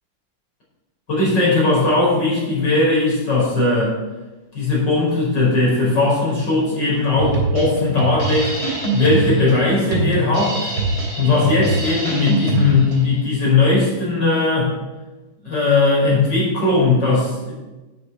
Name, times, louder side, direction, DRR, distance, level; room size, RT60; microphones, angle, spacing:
voice 1, 1.1-4.0 4.5-8.5 8.9-10.6 11.2-14.7 15.4-17.5, left 3 dB, 55° left, -5 dB, 5.9 m, -18 dB
Drum kit, 7.2-13.1, right 2 dB, 45° right, 3.6 m, -23 dB
9.3 x 9.1 x 7.2 m, 1.1 s
omnidirectional pair, 2.3 m